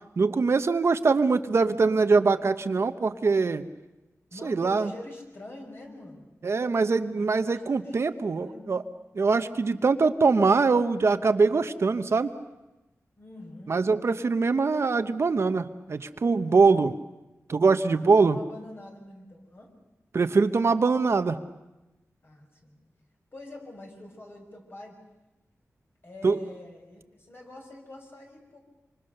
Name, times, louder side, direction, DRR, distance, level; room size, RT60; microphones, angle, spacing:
voice 1, 0.2-3.7 4.4-4.9 6.4-8.8 9.1-12.3 13.7-17.0 17.5-18.4 20.1-21.4 26.2-26.4, right 4 dB, 55° right, 10 dB, 0.9 m, -23 dB
voice 2, 4.3-6.3 7.2-7.9 8.4-8.7 13.2-13.8 17.8-19.7 22.2-22.8 23.3-25.0 26.0-28.6, left 1 dB, 45° left, 1 dB, 6.1 m, -45 dB
26.5 x 26.0 x 6.7 m, 1.0 s
wide cardioid pair, 125°, 5 cm